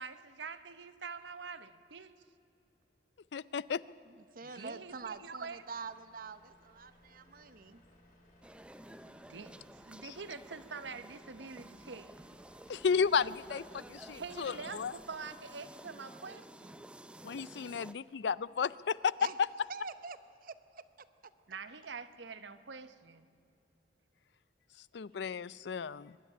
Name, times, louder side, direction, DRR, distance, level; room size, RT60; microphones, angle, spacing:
voice 1, 0.0-2.1 4.4-5.6 9.3-12.1 14.1-16.8 21.5-23.3, right 5 dB, 80° right, 12 dB, 0.9 m, -45 dB
voice 2, 3.3-3.8 12.7-14.9 17.2-19.1 24.9-26.2, left 6 dB, 70° left, 19 dB, 0.4 m, -33 dB
voice 3, 4.0-7.8 19.2-19.4 19.7-20.8, right 5 dB, 50° right, 13 dB, 0.8 m, -46 dB
Truck, 4.6-15.8, left 1 dB, 50° left, 5.8 m, -64 dB
sound 1, 8.4-17.9, right 1 dB, 5° right, 0.5 m, -52 dB
23.5 x 11.5 x 9.9 m, 2.6 s
head